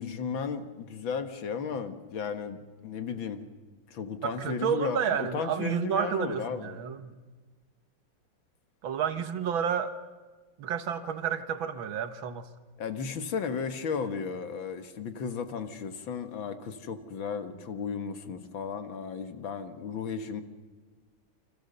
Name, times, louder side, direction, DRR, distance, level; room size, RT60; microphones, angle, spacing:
voice 1, 0.0-3.4 3.9-6.8 12.8-20.4, left 6 dB, 75° left, 9 dB, 2.2 m, -34 dB
voice 2, 4.2-7.1 8.8-10.0 10.6-12.5, right 8 dB, 75° right, 10 dB, 2.0 m, -30 dB
29.5 x 25.5 x 6.8 m, 1.4 s
omnidirectional pair, 2.2 m